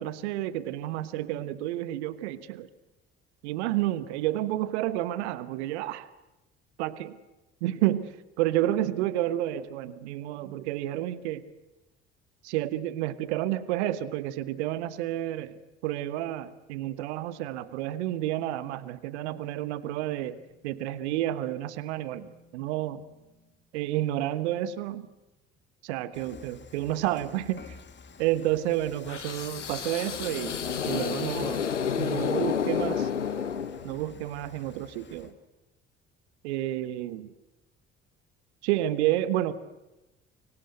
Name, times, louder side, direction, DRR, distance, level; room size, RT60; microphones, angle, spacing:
voice 1, 0.0-2.7 3.4-6.1 6.8-7.2 7.6-11.4 12.4-20.4 20.6-23.0 23.7-25.1 25.8-27.7 28.2-31.6 32.0-33.1 33.8-35.3 36.4-37.3 38.6-39.5, right 14 dB, 70° right, 16 dB, 1.2 m, -30 dB
sound 1, 19.2-23.5, left 3 dB, 60° left, 6.4 m, -60 dB
Dishes pots and pans / Frying (food), 26.1-35.3, left 5 dB, 30° left, 2.4 m, -50 dB
sound 2, 29.1-34.2, left 7 dB, 85° left, 0.9 m, -30 dB
24.5 x 24.5 x 7.9 m, 1.0 s
figure-of-eight pair, 50°, 35 cm